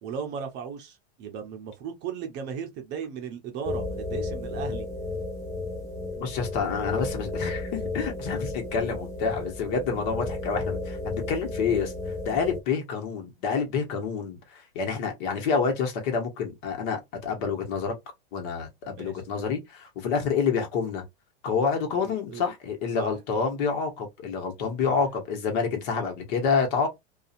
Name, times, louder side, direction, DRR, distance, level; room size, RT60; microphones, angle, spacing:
voice 1, 0.0-4.9 19.0-19.2 22.0-22.4 23.0-23.1 24.9-25.0 25.9-26.1, right 7 dB, 35° right, 0.7 m, -36 dB
sound 1, 3.6-12.6, left 2 dB, 10° left, 0.3 m, -33 dB
voice 2, 6.2-11.9 12.2-17.9 18.3-21.0 21.4-26.9, left 5 dB, 50° left, 1.2 m, -28 dB
2.7 x 2.4 x 2.5 m
hypercardioid pair, 135°, 31 cm